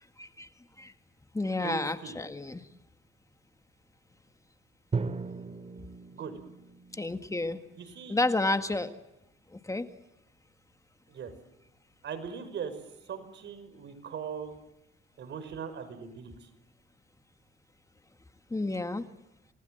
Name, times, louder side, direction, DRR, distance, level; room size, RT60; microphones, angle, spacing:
voice 1, 0.2-0.5 0.8-0.9 1.3-2.6 6.9-7.6 8.1-8.9 9.5-9.9 18.5-19.1, left 2 dB, 15° left, 9 dB, 1.6 m, -30 dB
voice 2, 1.6-2.2 6.1-6.3 7.8-8.2 11.1-11.3 12.0-12.8 13.1-14.5 15.2-16.5, right 7 dB, 65° right, 9 dB, 5.5 m, -39 dB
Drum, 4.9-8.7, right 4 dB, 35° right, 2.4 m, -38 dB
28.5 x 20.5 x 7.8 m, 0.93 s
cardioid pair, 90°, 20 cm